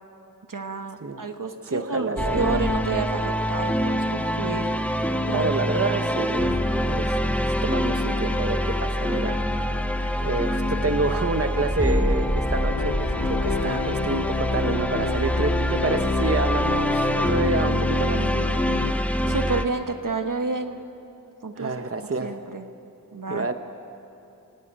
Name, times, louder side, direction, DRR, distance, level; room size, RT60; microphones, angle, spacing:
voice 1, 0.5-4.7 5.3-5.5 18.7-18.8 19.2-20.8 21.4-22.6 23.1-23.5, right 3 dB, 65° right, 7 dB, 1.4 m, -30 dB
voice 2, 1.6-2.6 5.3-9.4 10.2-18.2 21.6-22.4 23.3-23.5, right 3 dB, 40° right, 7 dB, 1.1 m, -28 dB
sound 1, 2.2-19.6, equal, 5° left, 1.3 m, -25 dB
sound 2, 12.5-18.9, left 7 dB, 85° left, 0.6 m, -32 dB
27.0 x 18.0 x 8.8 m, 2.8 s
wide cardioid pair, 50°, 34 cm